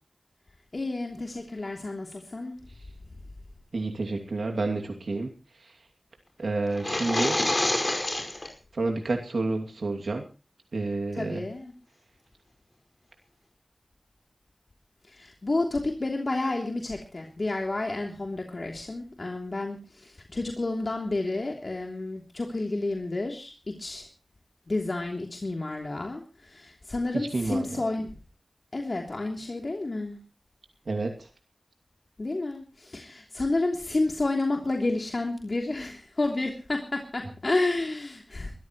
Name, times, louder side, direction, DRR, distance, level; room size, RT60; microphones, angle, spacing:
voice 1, 0.7-2.6 11.1-11.7 15.1-24.1 24.7-28.1 28.7-30.2 32.2-38.5, left 2 dB, 55° left, 1 dB, 3.1 m, -30 dB
voice 2, 3.7-5.3 6.4-7.4 8.7-10.2 10.7-11.4 27.1-27.7 30.9-31.1, right 3 dB, 90° right, 3 dB, 2.6 m, -29 dB
sound 1, 6.7-8.5, left 1 dB, 35° left, 5.3 m, -27 dB
23.0 x 14.0 x 3.1 m, 0.33 s
wide cardioid pair, 50°, 0 cm